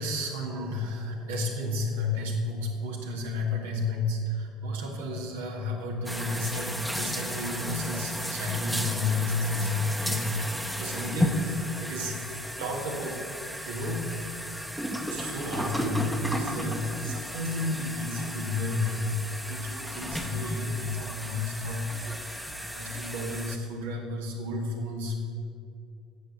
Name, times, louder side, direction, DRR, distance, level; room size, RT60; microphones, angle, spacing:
voice 1, 0.0-12.2 12.6-13.2 13.6-14.1 15.1-19.1 19.5-25.2, left 2 dB, 70° right, -1 dB, 2.1 m, -32 dB
sound 1, 6.1-23.6, equal, ahead, 1.2 m, -34 dB
9.8 x 8.2 x 6.8 m, 2.5 s
figure-of-eight pair, 65°, 0 cm